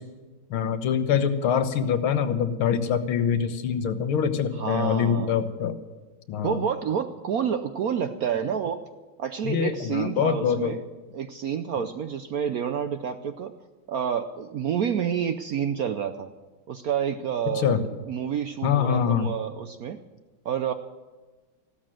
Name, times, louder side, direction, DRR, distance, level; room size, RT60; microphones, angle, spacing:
voice 1, 0.5-5.8 6.3-6.6 9.4-10.8 17.6-17.8 18.6-19.3, left 8 dB, 90° left, 9 dB, 1.9 m, -24 dB
voice 2, 4.5-5.4 6.4-8.8 9.2-10.8 11.1-13.5 13.9-16.3 16.7-20.0 20.4-20.7, right 8 dB, 70° right, 9 dB, 0.9 m, -29 dB
15.0 x 13.0 x 7.5 m, 1.3 s
omnidirectional pair, 2.3 m